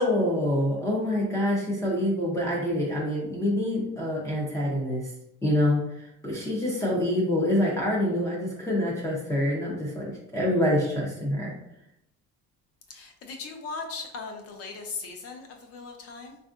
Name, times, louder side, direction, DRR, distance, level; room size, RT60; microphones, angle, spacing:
voice 1, 0.0-5.1 5.4-11.5, left 1 dB, 10° left, -4 dB, 0.4 m, -26 dB
voice 2, 12.9-16.4, left 4 dB, 50° left, 4 dB, 0.6 m, -38 dB
4.3 x 2.5 x 2.3 m, 0.80 s
cardioid pair, 170°, 31 cm